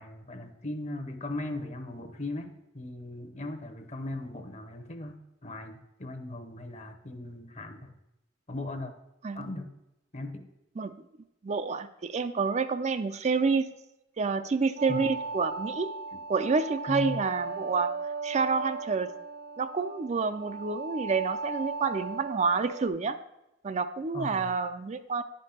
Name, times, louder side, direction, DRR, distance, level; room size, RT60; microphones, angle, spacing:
voice 1, 0.0-8.0 8.5-8.9 9.3-9.7 10.1-10.5 14.9-15.2 16.1-16.2 16.9-17.2 24.1-24.6, left 2 dB, 40° left, 7 dB, 0.9 m, -38 dB
voice 2, 11.4-13.7 14.2-15.9 16.3-17.9 18.2-19.1 19.6-23.2 23.6-25.2, right 4 dB, 35° right, 10 dB, 0.4 m, -28 dB
sound 1, 14.8-22.9, right 4 dB, 65° right, 0.9 m, -37 dB
10.0 x 5.3 x 5.6 m, 0.89 s
head